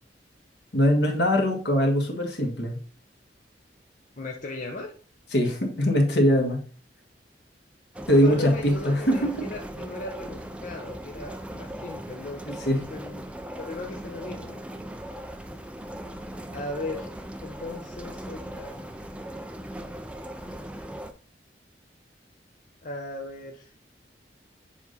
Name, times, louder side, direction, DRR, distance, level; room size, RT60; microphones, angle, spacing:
voice 1, 0.7-2.8 5.3-6.6 8.1-9.4 12.5-12.8, equal, 75° left, 2 dB, 1.6 m, -22 dB
voice 2, 4.2-4.9 8.2-12.4 12.9-13.3 13.6-14.6 16.5-17.1 17.4-18.8 22.8-23.7, left 2 dB, 45° left, 1 dB, 0.7 m, -37 dB
sound 1, 7.9-21.1, right 1 dB, 5° right, 0.4 m, -39 dB
7.2 x 3.6 x 3.9 m, 0.39 s
head